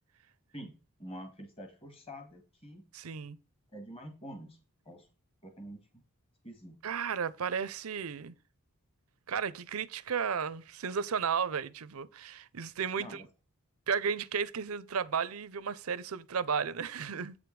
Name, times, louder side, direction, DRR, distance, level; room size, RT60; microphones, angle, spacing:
voice 1, 1.0-2.8 3.7-4.6 4.9-5.1 5.4-5.8 6.4-6.7 13.0-13.2, equal, 25° left, 1.9 m, -46 dB
voice 2, 2.9-3.4 6.8-8.4 9.3-13.2 13.9-17.4, right 6 dB, 75° right, 0.6 m, -34 dB
8.3 x 5.1 x 4.7 m
head